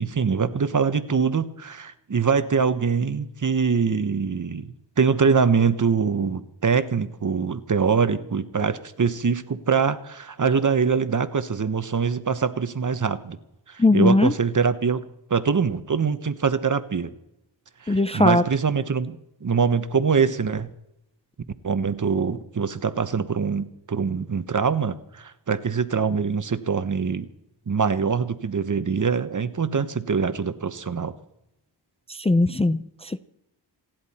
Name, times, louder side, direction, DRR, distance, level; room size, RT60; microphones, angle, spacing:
voice 1, 0.0-4.7 5.0-13.4 13.7-15.0 15.3-17.1 17.8-20.7 21.6-27.3 27.7-31.1, right 5 dB, 40° right, 12 dB, 1.0 m, -23 dB
voice 2, 13.8-14.3 17.9-18.4 32.1-33.2, left 2 dB, 15° left, 11 dB, 0.5 m, -19 dB
28.0 x 10.5 x 4.3 m, 0.86 s
wide cardioid pair, 90°, 45 cm